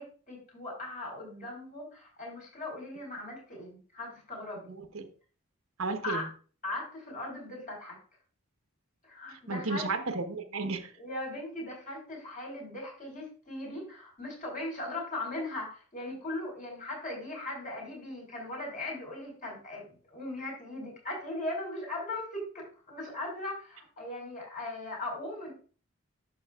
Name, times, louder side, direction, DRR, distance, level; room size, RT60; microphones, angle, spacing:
voice 1, 0.0-4.7 6.0-6.3 6.6-8.0 9.1-9.9 10.9-25.5, left 2 dB, 40° left, -1 dB, 4.6 m, -39 dB
voice 2, 4.7-5.1 5.8-6.2 9.3-10.9, right 3 dB, 85° right, 6 dB, 1.1 m, -33 dB
11.0 x 6.5 x 2.4 m, 0.38 s
head